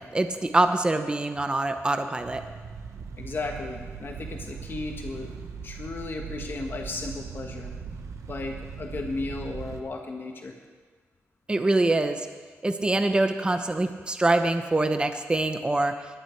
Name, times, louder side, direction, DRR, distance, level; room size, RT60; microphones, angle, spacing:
voice 1, 0.0-2.4 11.5-12.3 12.6-15.9, right 2 dB, 20° right, 8 dB, 0.9 m, -24 dB
sound 1, 2.2-9.8, right 6 dB, 90° right, 1.1 m, -39 dB
voice 2, 3.2-5.4 5.6-7.7 8.3-10.5, left 3 dB, 45° left, 2 dB, 1.6 m, -35 dB
18.5 x 11.5 x 4.6 m, 1.5 s
wide cardioid pair, 120°, 5 cm